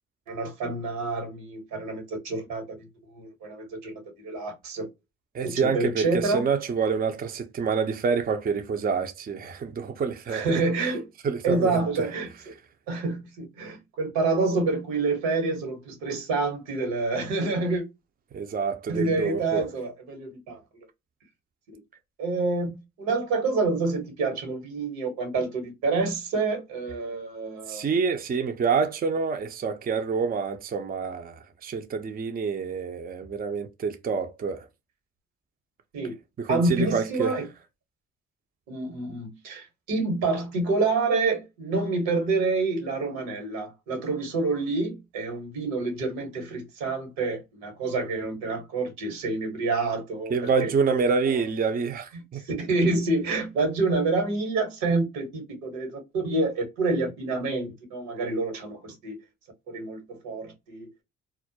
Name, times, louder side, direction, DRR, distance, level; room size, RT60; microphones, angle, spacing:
voice 1, 0.3-2.6 3.1-4.9 5.4-6.4 10.3-11.1 11.4-12.5 12.9-17.8 18.9-20.6 22.2-22.7 23.0-27.9 35.9-36.1 36.5-37.5 38.7-50.7 51.3-51.4 52.1-59.2 59.7-60.9, right 3 dB, 85° right, 1.2 m, -28 dB
voice 2, 5.3-10.6 11.2-12.1 18.3-19.7 27.7-34.7 36.4-37.4 50.3-52.4, right 5 dB, 30° right, 0.5 m, -27 dB
2.3 x 2.0 x 2.8 m
supercardioid pair, 55°, 32 cm